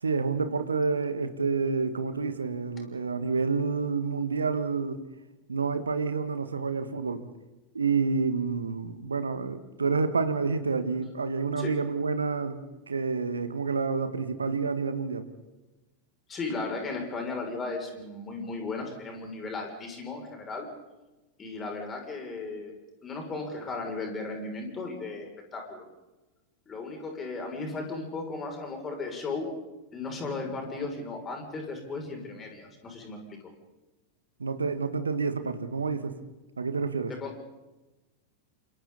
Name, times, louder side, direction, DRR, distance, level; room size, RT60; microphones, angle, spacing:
voice 1, 0.0-5.0 5.5-7.3 7.7-15.3 34.4-36.2 36.6-37.1, right 4 dB, 75° right, 11 dB, 1.7 m, -29 dB
voice 2, 16.3-20.7 21.4-22.7 23.0-25.8 26.7-29.5 29.9-33.4 37.1-37.4, left 3 dB, 20° left, 2 dB, 6.6 m, -36 dB
29.5 x 27.0 x 4.2 m, 1.1 s
figure-of-eight pair, 90°, 0 cm